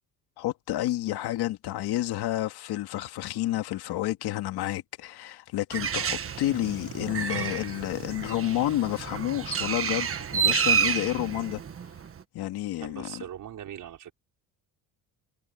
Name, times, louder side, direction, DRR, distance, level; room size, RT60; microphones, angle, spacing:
voice 1, 0.4-11.6 12.3-13.2, left 15 dB, 90° left, 2.1 m, -30 dB
Bird, 5.7-12.2, right 7 dB, 35° right, 1.6 m, -29 dB
voice 2, 12.8-14.1, right 10 dB, 55° right, 5.6 m, -40 dB
cardioid pair, 145°, 38 cm